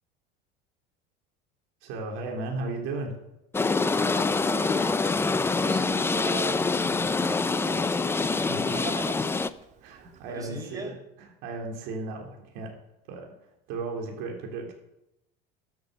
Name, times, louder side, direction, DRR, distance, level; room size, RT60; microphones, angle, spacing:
voice 1, 1.8-3.2 8.2-8.8 9.8-10.9 11.2-12.7 13.1-14.7, right 3 dB, 70° right, 1 dB, 3.6 m, -35 dB
sound 1, 3.5-9.5, left 4 dB, 10° left, 0.5 m, -25 dB
voice 2, 4.1-8.1 8.5-9.5 10.3-10.9, right 1 dB, 15° right, 2 dB, 4.7 m, -41 dB
Livestock farm animals working animals, 5.3-10.4, right 8 dB, 35° right, 1.0 m, -44 dB
13.0 x 9.4 x 6.9 m, 0.86 s
supercardioid pair, 125°, 21 cm